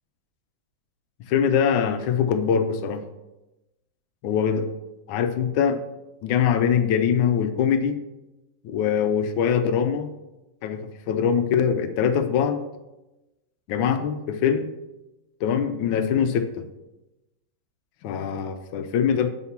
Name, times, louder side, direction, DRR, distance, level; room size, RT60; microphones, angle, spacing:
voice 1, 1.3-3.0 4.2-4.7 5.1-5.8 6.2-8.0 8.6-10.1 10.6-12.6 13.7-14.7 15.4-16.6 18.0-19.3, left 7 dB, 85° left, 8 dB, 1.4 m, -23 dB
5.7 x 4.9 x 5.8 m, 1.0 s
omnidirectional pair, 2.1 m